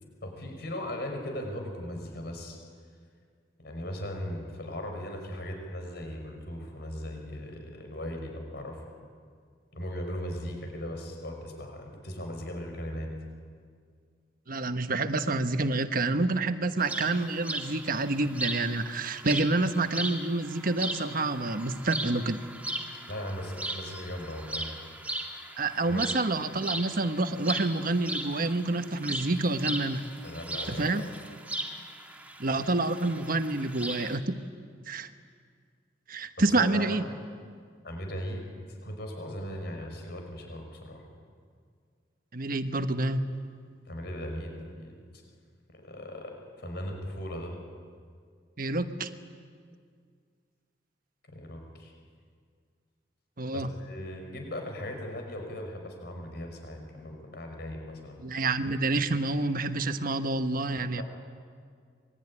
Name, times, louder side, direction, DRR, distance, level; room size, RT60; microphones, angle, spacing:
voice 1, 0.2-2.6 3.6-8.8 9.7-13.1 23.1-24.7 25.9-26.0 30.2-31.0 36.5-36.8 37.8-41.1 43.9-45.0 45.7-47.6 51.3-51.9 53.5-58.2 61.0-61.1, left 1 dB, 65° left, 3 dB, 5.5 m, -38 dB
voice 2, 14.5-22.4 25.6-30.0 30.7-31.0 32.4-34.5 34.9-35.1 36.1-37.0 42.3-43.2 48.6-49.1 53.4-53.7 58.2-61.0, right 2 dB, 50° right, 9 dB, 1.2 m, -28 dB
sound 1, 16.8-34.2, right 1 dB, 10° right, 2.4 m, -38 dB
26.5 x 22.0 x 9.9 m, 2.1 s
head